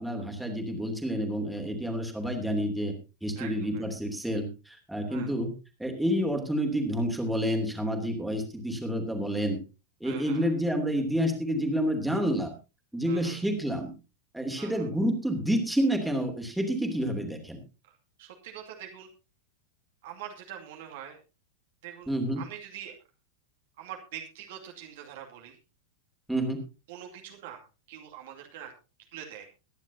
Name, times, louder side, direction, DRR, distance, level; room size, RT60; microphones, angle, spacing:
voice 1, 0.0-2.9 3.2-5.5 5.8-9.6 10.0-12.5 12.9-13.9 14.3-17.6 22.1-22.4 26.3-26.6, equal, 5° right, 2 dB, 3.0 m, -29 dB
voice 2, 3.4-3.8 5.1-5.3 10.0-10.5 13.1-13.4 14.6-14.9 18.2-19.1 20.0-21.2 21.8-22.1 22.4-22.9 23.8-25.6 26.9-27.6 27.9-28.7 29.1-29.5, right 10 dB, 55° right, 2 dB, 2.4 m, -43 dB
22.5 x 10.5 x 2.8 m, 0.30 s
figure-of-eight pair, 90°, 0 cm